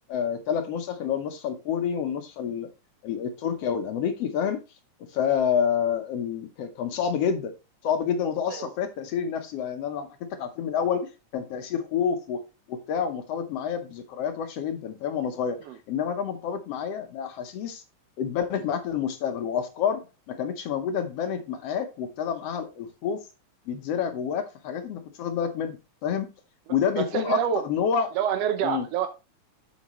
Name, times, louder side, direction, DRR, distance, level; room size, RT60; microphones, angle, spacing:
voice 1, 0.1-2.7 3.0-4.6 5.1-7.5 7.8-12.4 12.7-15.6 15.9-17.8 18.2-23.2 23.7-26.3 26.7-28.1 28.6-28.9, left 7 dB, 70° left, 7 dB, 1.6 m, -28 dB
voice 2, 27.0-27.6 28.1-29.1, right 9 dB, 75° right, 7 dB, 1.5 m, -27 dB
8.0 x 6.2 x 3.0 m, 0.27 s
omnidirectional pair, 3.4 m